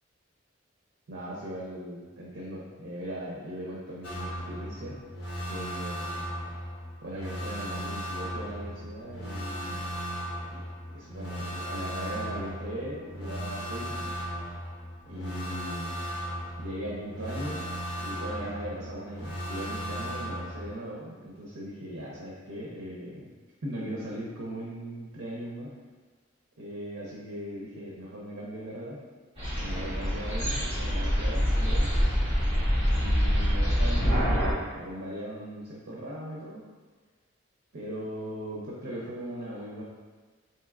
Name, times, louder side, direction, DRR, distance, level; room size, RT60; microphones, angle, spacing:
voice 1, 1.1-5.0 5.5-6.3 7.0-10.0 10.5-10.6 10.9-14.1 15.1-16.0 16.6-17.7 18.0-23.3 23.6-25.8 26.6-29.0 29.6-32.1 33.0-36.6 37.7-39.8, equal, 80° right, -5 dB, 0.7 m, -39 dB
sound 1, 4.0-20.7, equal, 55° left, 0.6 m, -36 dB
sound 2, 29.4-34.5, equal, 30° right, 1.3 m, -25 dB
4.4 x 2.8 x 2.4 m, 1.4 s
head